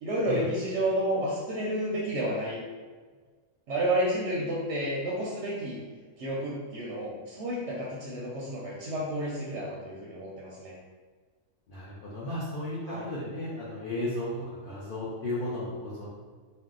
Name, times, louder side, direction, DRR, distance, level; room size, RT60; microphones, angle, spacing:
voice 1, 0.0-2.6 3.7-5.8 6.2-10.7 12.9-13.0, right 1 dB, 65° right, -5 dB, 0.8 m, -31 dB
voice 2, 11.7-14.3 14.6-16.1, left 1 dB, 70° left, -7 dB, 0.5 m, -34 dB
2.6 x 2.1 x 3.7 m, 1.5 s
omnidirectional pair, 1.5 m